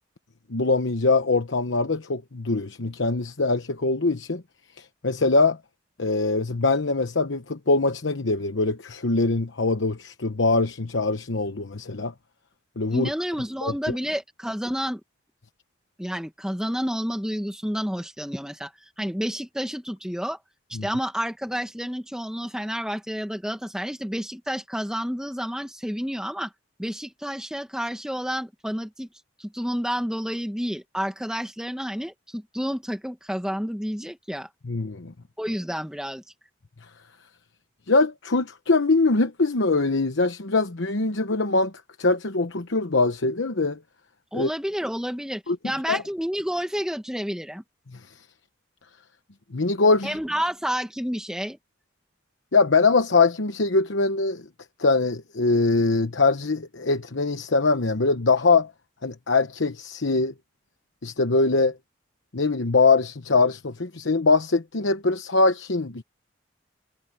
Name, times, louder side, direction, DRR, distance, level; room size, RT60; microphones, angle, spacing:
voice 1, 0.5-4.4 4.8-5.6 6.0-12.1 12.8-13.1 13.6-13.7 20.7-20.9 34.6-35.1 37.9-41.7 42.0-43.8 44.3-44.5 45.5-45.6 45.9-46.0 49.5-50.2 52.5-54.4 54.8-58.7 59.0-60.3 61.0-61.8 62.3-66.0, left 3 dB, 75° left, 1.0 m, -22 dB
voice 2, 12.9-15.0 16.0-18.7 19.0-20.4 20.7-26.5 26.8-29.1 29.4-34.5 35.4-36.2 44.3-47.6 50.0-51.6, equal, 5° right, 1.9 m, -30 dB
head